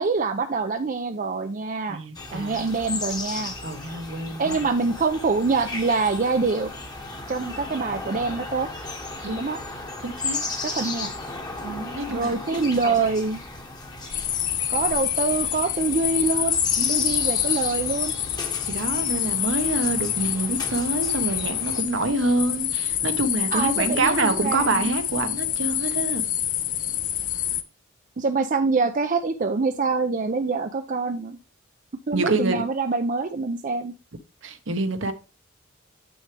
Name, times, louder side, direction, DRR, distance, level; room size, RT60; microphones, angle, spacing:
voice 1, 0.0-2.0 2.3-3.5 4.4-6.7 7.3-8.7 9.4-9.6 10.6-11.1 12.1-13.4 14.7-16.6 16.9-18.1 23.5-24.9 28.2-31.4 32.1-33.9, right 4 dB, 40° right, 0.5 m, -25 dB
voice 2, 1.9-2.6 3.6-4.7 9.2-9.5 10.0-10.4 11.6-12.4 12.8-12.9 16.8-17.1 18.7-26.3 32.1-32.7 34.4-35.1, right 2 dB, 65° right, 1.0 m, -26 dB
sound 1, 2.2-21.8, left 3 dB, 20° left, 1.2 m, -35 dB
sound 2, 14.1-27.6, left 11 dB, 40° left, 0.6 m, -27 dB
8.0 x 6.3 x 3.3 m
head